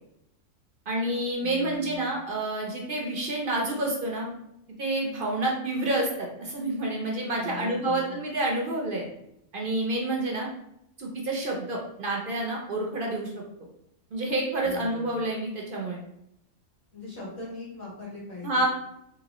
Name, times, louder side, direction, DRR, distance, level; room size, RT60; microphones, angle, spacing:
voice 1, 0.9-4.3 4.8-9.0 9.5-10.5 11.0-13.3 14.1-16.0 18.4-18.6, right 2 dB, 50° right, -1 dB, 0.7 m, -28 dB
voice 2, 1.4-2.1 7.3-8.2 14.6-15.1 16.9-18.7, left 4 dB, 50° left, -7 dB, 1.9 m, -40 dB
3.9 x 3.0 x 3.0 m, 0.80 s
omnidirectional pair, 1.4 m